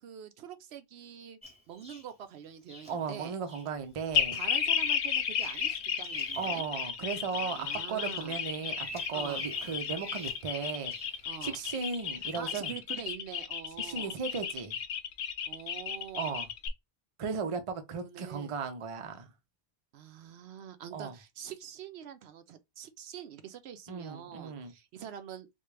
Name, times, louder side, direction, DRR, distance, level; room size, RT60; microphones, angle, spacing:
voice 1, 0.0-1.4 1.7-3.4 4.3-6.6 7.3-8.4 9.1-9.4 11.3-11.6 12.2-14.2 15.5-16.5 18.0-18.5 19.9-25.5, right 9 dB, 75° right, 0.8 m, -45 dB
Bird vocalization bird call bird song, 1.4-2.1 2.7-2.9 3.5-3.7 4.2-4.5 4.8-6.6 7.0-7.8 8.1-11.2 11.9-12.1, equal, 5° right, 0.9 m, -46 dB
voice 2, 2.9-4.4 6.3-10.9 11.4-12.7 13.8-14.8 16.2-16.5 17.2-19.3 20.9-21.1 23.9-24.7, right 5 dB, 40° right, 0.5 m, -36 dB
sound 1, 4.1-16.7, left 8 dB, 75° left, 0.9 m, -33 dB
3.4 x 2.4 x 3.2 m
omnidirectional pair, 1.1 m